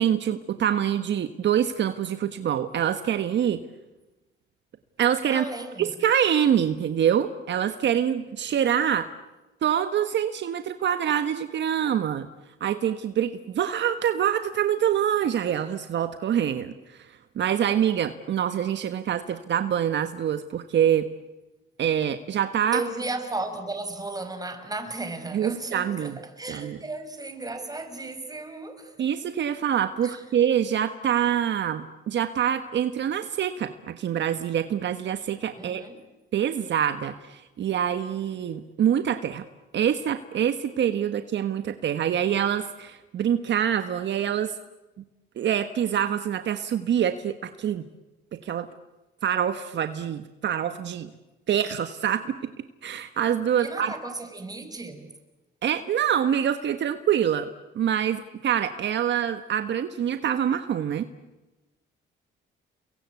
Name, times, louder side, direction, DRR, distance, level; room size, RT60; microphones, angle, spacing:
voice 1, 0.0-3.6 5.0-5.4 5.8-9.1 9.6-12.3 12.6-21.1 21.8-22.8 25.3-26.2 26.5-26.8 29.0-35.8 36.3-39.4 39.7-44.5 45.4-47.8 48.3-48.7 49.2-51.1 51.5-52.3 52.8-53.9 55.6-57.5 57.7-61.1, right 9 dB, 65° right, 1.4 m, -25 dB
voice 2, 5.3-5.9 22.7-29.1 30.0-30.2 35.6-36.0 53.6-55.1, right 2 dB, 20° right, 5.5 m, -35 dB
30.0 x 23.0 x 8.4 m
cardioid pair, 90°, 20 cm